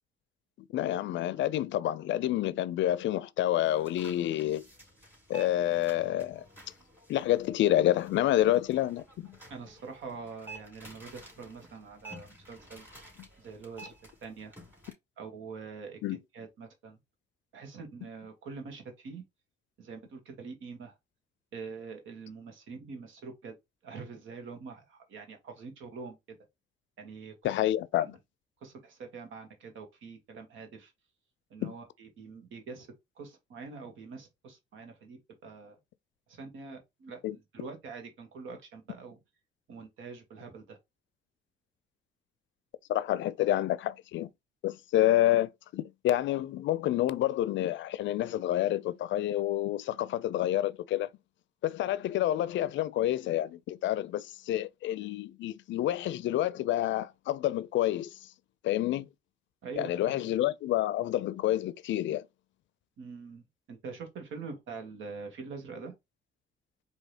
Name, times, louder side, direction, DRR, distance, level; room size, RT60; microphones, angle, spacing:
voice 1, 0.7-4.6 5.3-6.4 7.1-9.4 16.0-16.2 27.4-28.2 31.6-31.7 37.2-37.4 42.9-44.3 44.6-51.1 51.6-58.1 58.6-59.1 59.8-62.2, left 13 dB, 70° left, 0.4 m, -28 dB
sound 1, 3.6-14.9, right 2 dB, 10° right, 2.9 m, -52 dB
voice 2, 9.5-12.9 13.4-13.9 14.2-14.5 15.2-16.0 16.3-17.0 17.5-19.2 19.8-21.0 21.5-23.5 23.8-26.4 27.0-27.6 27.9-28.0 28.6-30.9 31.5-32.9 33.2-35.8 36.3-37.2 37.5-39.2 39.7-40.8 59.6-60.3 63.0-63.4 63.7-65.9, right 4 dB, 80° right, 1.3 m, -44 dB
4.8 x 2.8 x 2.8 m
cardioid pair, 90°, 20 cm